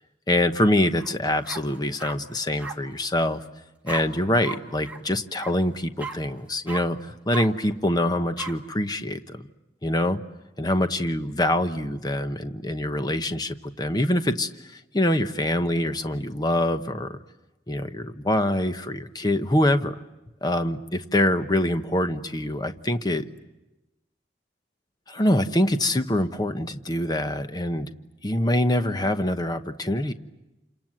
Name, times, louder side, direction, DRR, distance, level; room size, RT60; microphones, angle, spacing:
voice 1, 0.3-3.4 3.8-9.4 9.8-10.2 10.6-17.2 17.7-20.0 20.4-23.2 25.1-27.9 28.2-30.1, left 1 dB, 20° left, 9 dB, 1.0 m, -25 dB
sound 1, 1.0-1.1 1.4-2.2 2.6-2.7 3.9-4.0 4.4-4.6 4.8-5.0 5.4-5.5 6.0-6.2 6.7-6.8 7.3-7.5 8.4-8.5, right 4 dB, 10° right, 2.5 m, -35 dB
28.5 x 27.0 x 7.8 m, 1.0 s
head